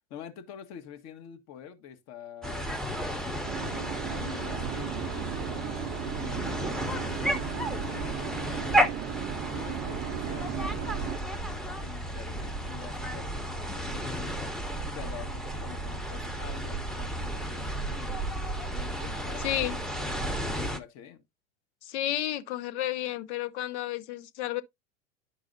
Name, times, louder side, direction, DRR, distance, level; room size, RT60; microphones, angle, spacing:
voice 1, 0.1-3.5 4.1-9.0 9.5-18.2 18.7-21.2, left 9 dB, 45° left, 1.4 m, -47 dB
sound 1, 2.4-20.8, equal, ahead, 0.8 m, -33 dB
sound 2, 3.4-11.2, right 11 dB, 30° right, 0.5 m, -36 dB
voice 2, 19.4-19.8 21.8-24.6, left 13 dB, 65° left, 0.8 m, -31 dB
10.5 x 4.8 x 2.6 m
hypercardioid pair, 95°, 37 cm